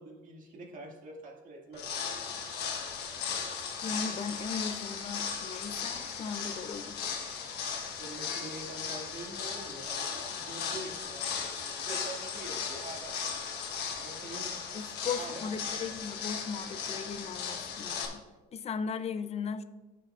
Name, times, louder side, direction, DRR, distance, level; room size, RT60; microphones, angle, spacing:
voice 1, 0.0-1.9 8.0-13.2 14.0-14.5 15.2-15.6, right 2 dB, 50° right, -1 dB, 2.2 m, -45 dB
sound 1, 1.7-18.0, left 6 dB, 80° left, 1.4 m, -37 dB
voice 2, 3.8-7.0 14.7-18.2 18.5-19.6, left 5 dB, 40° left, 11 dB, 0.6 m, -37 dB
15.5 x 5.7 x 2.5 m, 1.2 s
cardioid pair, 110°, 17 cm